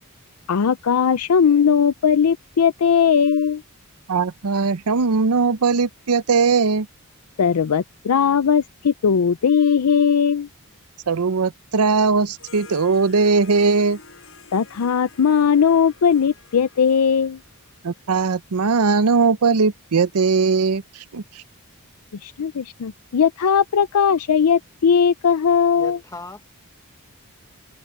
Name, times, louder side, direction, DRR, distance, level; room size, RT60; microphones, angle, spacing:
voice 1, 0.5-3.6 7.4-10.5 14.5-17.4 22.2-26.0, left 7 dB, 80° left, 0.5 m, -18 dB
voice 2, 4.1-6.9 11.1-14.0 17.8-21.2, right 4 dB, 85° right, 0.7 m, -19 dB
Harp, 12.3-18.0, left 4 dB, 60° left, 6.2 m, -48 dB
voice 3, 25.8-26.5, left 2 dB, 15° left, 0.8 m, -37 dB
head